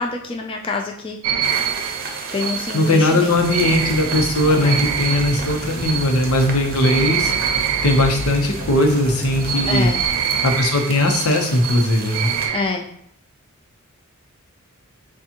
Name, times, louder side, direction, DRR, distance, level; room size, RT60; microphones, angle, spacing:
voice 1, 0.0-1.5 2.3-3.7 4.5-4.8 9.7-10.0 12.5-12.8, left 3 dB, 25° left, 1 dB, 0.4 m, -27 dB
sound 1, 1.2-8.8 9.4-12.7, right 8 dB, 80° right, 0.4 m, -25 dB
sound 2, 1.4-12.5, right 3 dB, 45° right, 0.7 m, -34 dB
voice 2, 2.7-9.9 10.4-12.3, left 1 dB, 80° left, 3 dB, 0.9 m, -19 dB
Aircraft, 3.4-10.1, equal, 40° left, 0.9 m, -33 dB
6.8 x 2.4 x 2.9 m, 0.68 s
head